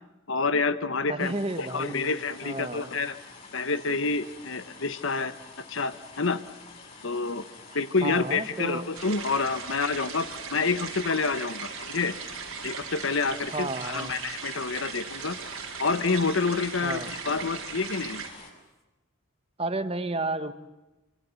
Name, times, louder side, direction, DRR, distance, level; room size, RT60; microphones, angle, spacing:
voice 1, 0.3-3.2 3.5-5.3 5.7-6.4 7.0-7.4 7.7-12.1 12.6-15.4 15.8-18.2, left 4 dB, 65° left, 12 dB, 1.0 m, -28 dB
voice 2, 1.1-2.1 2.4-2.9 8.0-8.9 13.5-14.2 16.8-17.1 19.6-20.5, right 2 dB, 25° right, 10 dB, 1.4 m, -32 dB
sound 1, 1.2-18.5, left 4 dB, 30° left, 6.5 m, -48 dB
sound 2, 8.3-18.8, left 2 dB, ahead, 3.2 m, -58 dB
sound 3, 8.9-18.3, right 6 dB, 85° right, 4.7 m, -38 dB
26.5 x 24.5 x 7.0 m, 1.0 s
head